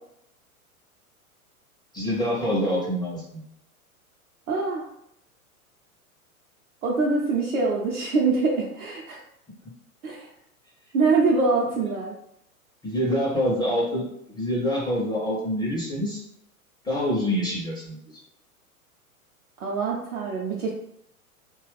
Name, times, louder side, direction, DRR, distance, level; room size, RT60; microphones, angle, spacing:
voice 1, 1.9-3.4 12.8-14.0 14.3-16.2 16.8-18.0, equal, 10° left, -4 dB, 0.5 m, -26 dB
voice 2, 4.5-4.8 6.8-9.2 10.0-10.3 10.9-12.1 19.6-20.7, right 3 dB, 65° right, -4 dB, 0.7 m, -24 dB
2.9 x 2.3 x 3.2 m, 0.75 s
figure-of-eight pair, 100°, 44 cm